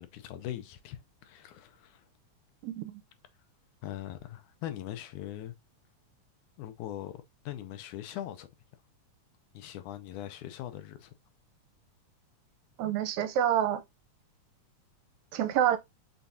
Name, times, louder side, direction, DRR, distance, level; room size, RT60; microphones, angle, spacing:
voice 1, 0.0-2.1 3.8-5.5 6.6-8.5 9.5-11.1, left 12 dB, 90° left, 2.2 m, -41 dB
voice 2, 2.6-3.0 12.8-13.8 15.3-15.8, right 10 dB, 80° right, 1.9 m, -27 dB
5.7 x 3.5 x 2.7 m
omnidirectional pair, 3.4 m